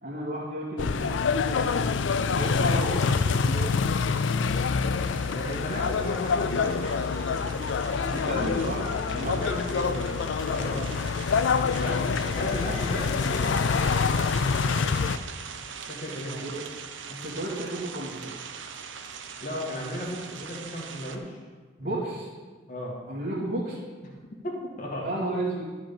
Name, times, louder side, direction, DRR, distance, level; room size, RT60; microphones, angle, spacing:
voice 1, 0.0-1.2 1.5-2.0 2.3-3.8 8.1-9.3 16.3-16.6 17.1-18.3 21.8-22.3 23.1-23.8 25.0-25.6, right 1 dB, 60° right, -9 dB, 2.3 m, -33 dB
sound 1, 0.8-15.2, left 5 dB, 75° left, 0.4 m, -26 dB
sound 2, 1.4-21.2, right 6 dB, 75° right, 0.8 m, -43 dB
voice 2, 4.9-8.1 9.2-10.9 11.6-14.9 15.9-16.5 19.4-21.4 21.8-22.0 22.7-23.0 24.3-25.1, equal, 40° left, -3 dB, 2.1 m, -35 dB
12.5 x 5.1 x 7.1 m, 1.4 s
head